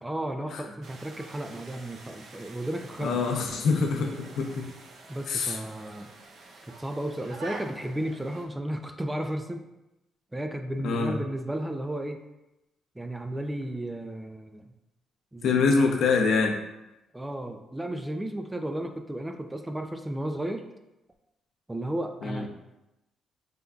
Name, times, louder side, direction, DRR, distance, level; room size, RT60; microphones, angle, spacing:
voice 1, 0.0-3.2 5.1-6.1 6.7-9.7 10.3-12.2 13.0-14.7 15.3-16.0 17.1-20.6 21.7-22.5, right 1 dB, 10° right, 6 dB, 0.4 m, -34 dB
sound 1, 0.8-8.4, right 2 dB, 65° right, 0.6 m, -47 dB
voice 2, 3.0-4.7 5.3-5.6 10.8-11.2 15.4-16.5 22.2-22.5, left 4 dB, 75° left, 2 dB, 0.6 m, -25 dB
5.1 x 3.6 x 2.3 m, 0.94 s
cardioid pair, 90°, 0 cm